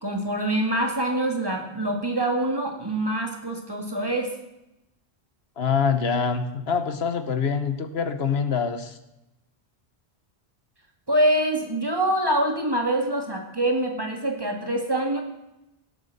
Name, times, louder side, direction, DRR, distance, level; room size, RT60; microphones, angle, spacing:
voice 1, 0.0-4.3 11.1-15.2, right 1 dB, 20° right, 2 dB, 2.0 m, -25 dB
voice 2, 5.6-9.0, left 6 dB, 75° left, 10 dB, 1.2 m, -25 dB
17.0 x 8.2 x 6.6 m, 0.90 s
omnidirectional pair, 1.1 m